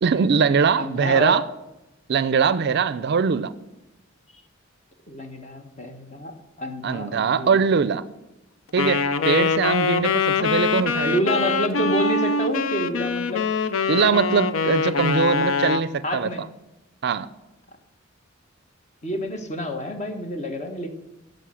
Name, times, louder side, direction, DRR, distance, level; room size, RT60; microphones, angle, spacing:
voice 1, 0.0-1.4 2.1-3.5 6.8-8.0 8.7-11.2 13.9-16.3 17.0-17.3, right 6 dB, 55° right, 15 dB, 0.4 m, -21 dB
voice 2, 0.8-1.4 5.1-7.6 11.0-13.4 16.0-16.4 19.0-20.9, equal, 35° left, 5 dB, 1.3 m, -28 dB
Wind instrument woodwind instrument, 8.8-15.9, left 4 dB, 80° left, 0.6 m, -23 dB
11.5 x 5.4 x 6.3 m, 0.95 s
head